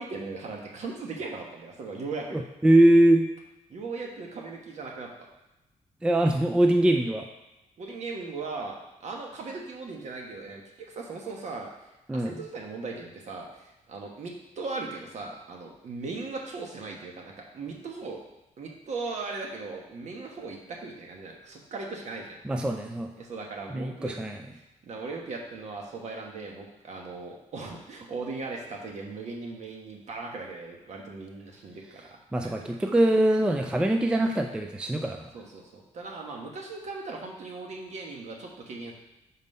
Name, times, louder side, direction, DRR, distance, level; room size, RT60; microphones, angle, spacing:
voice 1, 0.0-2.4 3.7-5.3 7.8-11.7 12.1-18.2 18.6-22.4 23.2-24.1 24.6-32.2 32.4-32.7 35.3-38.9, right 3 dB, 55° right, 0 dB, 1.2 m, -38 dB
voice 2, 2.3-3.3 6.0-7.3 12.1-12.3 22.4-23.1 23.7-24.4 32.3-35.3, right 1 dB, 5° right, 4 dB, 0.3 m, -22 dB
5.4 x 4.1 x 5.3 m, 0.96 s
wide cardioid pair, 160°, 14 cm